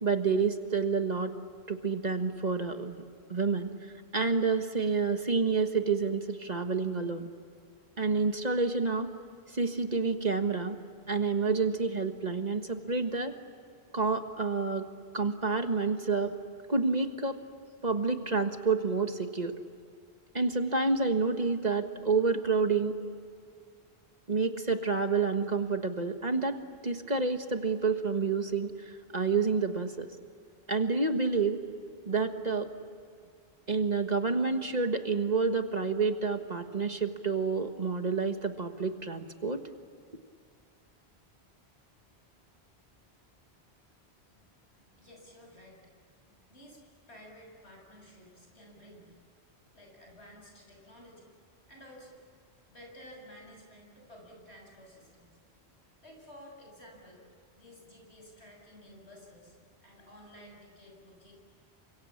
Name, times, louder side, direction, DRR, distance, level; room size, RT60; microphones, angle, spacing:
voice 1, 0.0-1.3 1.7-3.0 3.3-3.7 4.1-7.3 8.0-9.1 9.5-10.8 11.1-13.3 13.9-14.9 15.1-16.3 16.7-17.4 17.8-19.5 20.3-22.9 24.3-30.1 30.7-31.6 32.1-32.7 33.7-39.6, right 4 dB, 40° right, 6 dB, 1.6 m, -29 dB
voice 2, 44.7-45.9 46.3-49.1 49.7-51.3 51.7-52.2 52.7-55.3 56.0-57.3 57.5-59.6 59.8-61.3, equal, 80° left, 1 dB, 7.4 m, -53 dB
29.0 x 25.5 x 7.4 m, 2.3 s
omnidirectional pair, 1.1 m